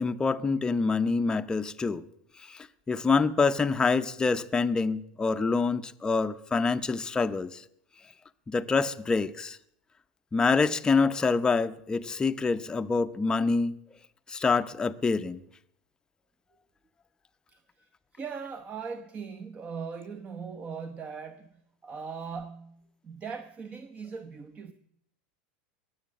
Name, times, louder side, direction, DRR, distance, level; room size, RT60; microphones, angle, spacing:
voice 1, 0.0-2.0 2.5-7.6 8.5-9.6 10.3-13.8 14.3-15.4, left 4 dB, 15° left, 0.7 m, -26 dB
voice 2, 17.5-24.7, right 5 dB, 25° right, 0.9 m, -40 dB
21.0 x 7.9 x 7.4 m
supercardioid pair, 125°, 5 cm